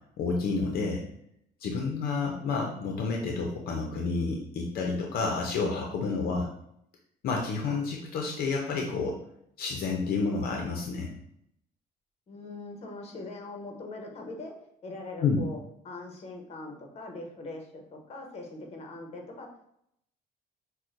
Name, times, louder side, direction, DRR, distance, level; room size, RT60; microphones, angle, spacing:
voice 1, 0.2-1.0 1.6-6.5 7.2-9.2 9.6-11.1 15.2-15.4, left 4 dB, 65° left, 1 dB, 0.6 m, -29 dB
voice 2, 12.3-14.5 14.8-15.6 15.8-19.5, left 2 dB, 40° left, 2 dB, 0.9 m, -41 dB
5.9 x 2.2 x 2.5 m, 0.73 s
cardioid pair, 110°, 17 cm